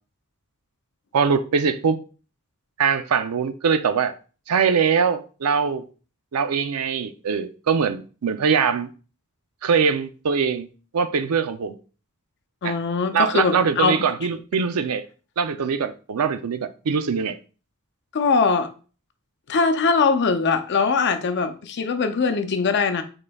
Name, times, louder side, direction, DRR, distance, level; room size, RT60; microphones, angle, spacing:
voice 1, 1.1-2.0 2.8-4.2 4.5-5.8 6.3-8.9 9.6-10.7 10.9-11.7 12.6-12.7 13.1-15.0 15.4-17.4, right 6 dB, 80° right, 0.5 m, -22 dB
voice 2, 12.6-14.0 14.5-14.6 18.1-18.7 19.5-23.0, left 4 dB, 50° left, 0.5 m, -21 dB
5.1 x 3.8 x 2.3 m
head